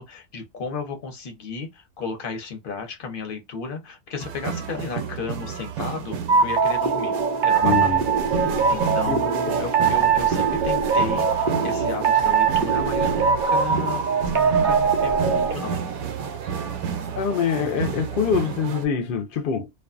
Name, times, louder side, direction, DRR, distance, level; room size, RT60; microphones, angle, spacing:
voice 1, 0.0-7.2 7.4-7.9 8.7-14.0 14.3-15.8, left 4 dB, 45° left, 0.8 m, -34 dB
sound 1, 4.2-18.9, right 7 dB, 75° right, 1.0 m, -31 dB
sound 2, 6.3-15.5, right 6 dB, 55° right, 0.5 m, -21 dB
voice 2, 7.6-8.0 8.4-9.6 17.2-19.7, left 6 dB, 80° left, 0.4 m, -25 dB
2.5 x 2.3 x 2.3 m
omnidirectional pair, 1.5 m